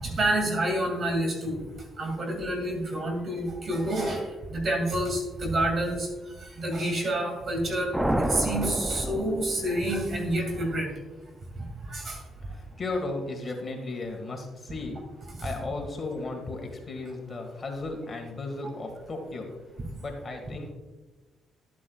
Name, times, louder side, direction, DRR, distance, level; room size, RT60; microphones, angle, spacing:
voice 1, 0.0-1.6 2.0-6.1 6.4-10.9 11.6-12.2 14.9-15.0 15.4-15.5, right 1 dB, 45° right, 2 dB, 2.4 m, -28 dB
sound 1, 7.9-10.2, right 1 dB, 10° right, 0.6 m, -29 dB
voice 2, 12.5-15.0 15.4-19.5 20.0-20.7, left 2 dB, 35° left, 2 dB, 1.8 m, -35 dB
12.0 x 8.3 x 2.4 m, 1.2 s
cardioid pair, 90°, 0 cm